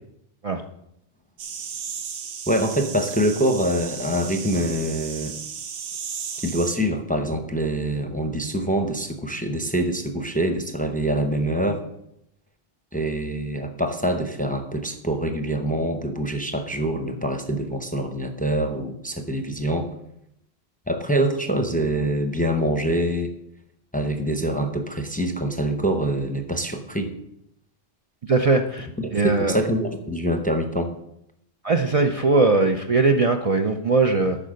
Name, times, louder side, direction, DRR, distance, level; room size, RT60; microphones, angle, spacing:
sound 1, 1.4-6.8, right 7 dB, 85° right, 1.0 m, -35 dB
voice 1, 2.5-5.3 6.4-11.8 12.9-19.9 20.9-23.3 23.9-27.1 29.0-30.9, right 1 dB, 10° left, 7 dB, 0.7 m, -25 dB
voice 2, 28.3-28.9 29.1-29.6 31.6-34.4, right 3 dB, 40° right, 4 dB, 0.6 m, -20 dB
8.8 x 5.7 x 6.4 m, 0.78 s
omnidirectional pair, 1.0 m